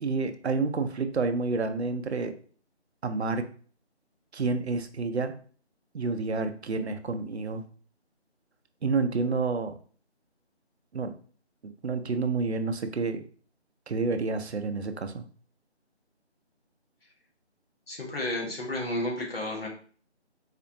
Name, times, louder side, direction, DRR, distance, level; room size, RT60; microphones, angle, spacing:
voice 1, 0.0-2.3 3.0-3.5 4.3-5.3 5.9-7.6 8.8-9.8 10.9-11.2 11.6-13.2 13.9-15.3, right 4 dB, 70° right, 7 dB, 0.6 m, -29 dB
voice 2, 17.9-19.7, left 1 dB, 55° left, -1 dB, 1.1 m, -32 dB
4.3 x 2.5 x 2.7 m, 0.43 s
figure-of-eight pair, 175°, 34 cm